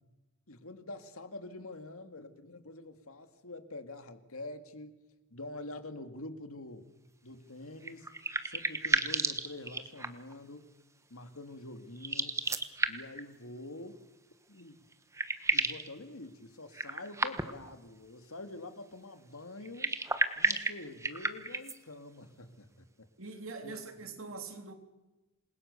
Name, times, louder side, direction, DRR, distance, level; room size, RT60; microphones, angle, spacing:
voice 1, 0.5-5.0 5.3-6.9 7.2-8.1 8.4-10.7 11.1-12.4 12.9-14.0 14.5-14.8 15.5-20.0 20.4-22.7 23.0-23.1 23.6-23.7, left 2 dB, 75° left, 2.2 m, -46 dB
sound 1, 7.8-10.3 11.9-13.2 14.6-14.7 14.9-15.9 16.7-17.7 19.6-21.8, right 3 dB, 15° right, 1.3 m, -32 dB
voice 2, 23.2-24.7, right 3 dB, 65° right, 3.5 m, -43 dB
28.0 x 22.0 x 7.0 m
head